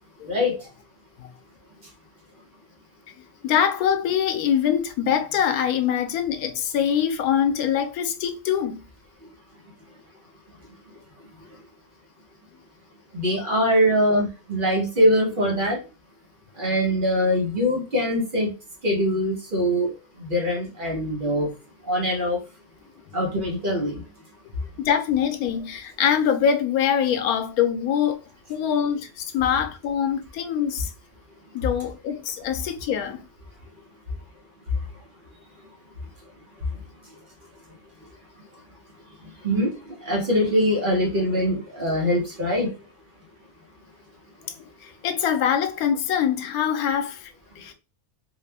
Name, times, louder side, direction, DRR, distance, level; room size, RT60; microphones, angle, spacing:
voice 1, 3.4-8.8 24.8-28.2 28.5-30.9 31.5-33.2 44.8-47.7, left 8 dB, 85° left, 1.1 m, -24 dB
voice 2, 13.1-15.8 16.6-18.5 18.8-19.9 20.2-21.5 21.9-22.4 23.1-24.0 39.4-39.7 40.0-42.7, equal, 40° right, 1.1 m, -22 dB
3.8 x 2.4 x 3.3 m
omnidirectional pair, 1.5 m